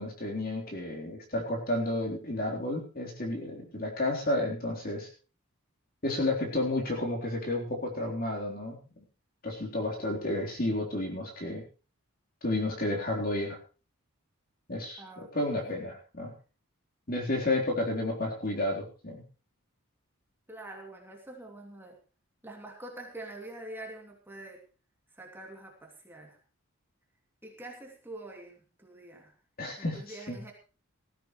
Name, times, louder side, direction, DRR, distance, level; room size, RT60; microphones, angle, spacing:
voice 1, 0.0-5.1 6.0-8.8 9.4-11.6 12.4-13.6 14.7-15.0 15.3-16.3 17.1-19.2 29.6-30.4, left 1 dB, 40° left, 0 dB, 3.9 m, -31 dB
voice 2, 15.0-15.3 15.6-15.7 20.5-22.0 22.4-24.6 25.2-26.4 27.4-29.3 29.8-30.5, right 1 dB, 10° right, 0 dB, 2.7 m, -45 dB
19.0 x 15.0 x 3.2 m, 0.35 s
head